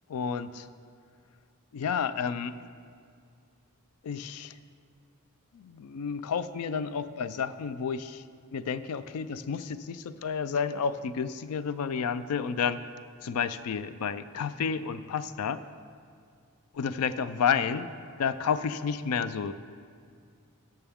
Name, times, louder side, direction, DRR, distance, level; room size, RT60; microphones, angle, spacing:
voice 1, 0.1-0.7 1.7-2.6 4.0-4.5 5.5-8.2 8.5-12.8 13.2-15.6 16.8-17.9 18.2-19.5, left 6 dB, 75° left, 14 dB, 0.4 m, -30 dB
14.0 x 6.5 x 3.6 m, 2.3 s
head